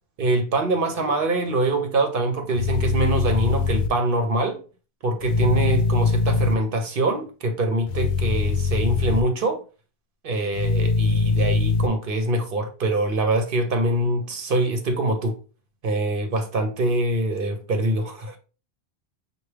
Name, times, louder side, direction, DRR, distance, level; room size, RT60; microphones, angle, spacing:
voice 1, 0.2-4.6 5.0-9.6 10.2-15.4 15.8-18.4, right 2 dB, 60° right, 0.9 m, -24 dB
sound 1, 2.5-3.9 5.2-6.5 7.9-9.2 10.5-11.9, left 4 dB, 75° left, 0.8 m, -22 dB
5.8 x 2.3 x 3.3 m
omnidirectional pair, 1.1 m